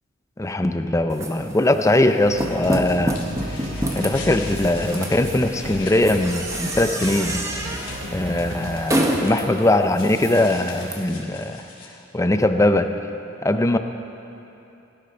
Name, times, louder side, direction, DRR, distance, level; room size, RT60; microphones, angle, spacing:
voice 1, 0.4-3.7 3.9-7.4 8.1-11.6 12.1-13.0 13.4-13.8, left 1 dB, 15° left, 8 dB, 0.5 m, -21 dB
sound 1, 1.1-10.9, right 1 dB, 15° right, 1.1 m, -29 dB
sound 2, 2.2-9.2, equal, 70° right, 2.6 m, -34 dB
sound 3, 3.1-8.0 10.0-11.9, left 3 dB, 45° left, 2.5 m, -41 dB
17.5 x 12.0 x 5.7 m, 2.9 s
head